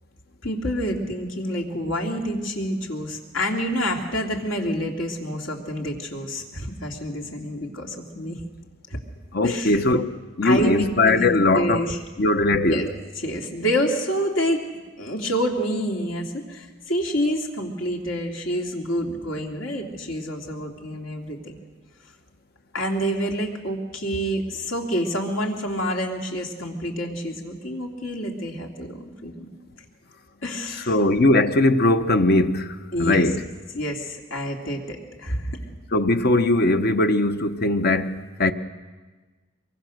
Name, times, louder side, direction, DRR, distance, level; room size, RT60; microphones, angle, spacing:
voice 1, 0.4-8.4 8.9-9.0 9.4-9.8 10.4-12.0 12.5-12.9 13.2-14.7 15.0-21.5 22.7-29.5 30.4-30.9 32.9-33.3 33.7-35.6, equal, 75° left, 2.9 m, -28 dB
voice 2, 9.3-11.8 12.2-12.8 30.9-33.4 35.9-38.5, left 2 dB, 55° left, 1.0 m, -20 dB
23.5 x 23.0 x 6.5 m
head